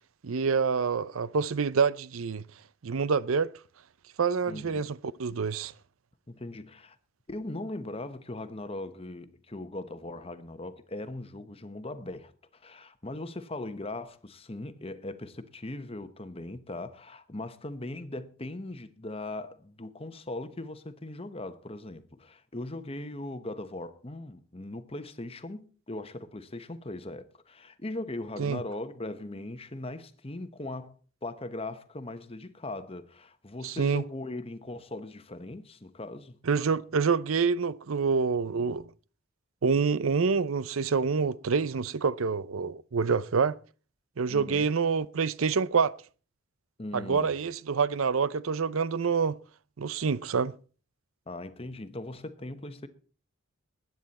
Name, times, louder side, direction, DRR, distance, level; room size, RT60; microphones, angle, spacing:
voice 1, 0.2-2.4 2.8-3.5 4.2-5.7 28.4-28.6 33.6-34.0 36.5-38.9 39.6-43.6 44.2-45.9 46.9-49.4 49.8-50.6, right 5 dB, 80° right, 0.6 m, -27 dB
voice 2, 4.5-4.8 6.3-7.0 7.3-30.9 31.2-36.4 44.3-44.7 46.8-47.3 51.3-52.9, left 2 dB, 25° left, 1.1 m, -39 dB
20.5 x 9.4 x 4.2 m
head